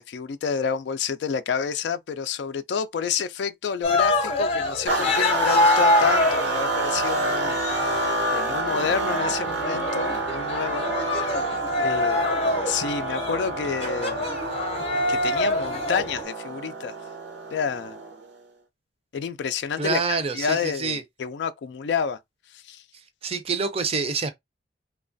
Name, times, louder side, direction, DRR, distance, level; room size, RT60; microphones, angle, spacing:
voice 1, 0.0-10.9 11.4-12.3 12.7-14.3 15.1-17.0 17.5-18.0 19.1-22.2 22.5-22.8, left 6 dB, 65° left, 0.3 m, -29 dB
Cheering, 3.8-16.2, left 2 dB, 35° left, 0.6 m, -25 dB
sound 1, 4.9-18.3, right 3 dB, 75° right, 0.7 m, -29 dB
voice 2, 19.8-21.0 23.2-24.3, right 4 dB, 35° right, 0.5 m, -26 dB
3.1 x 2.2 x 2.5 m
head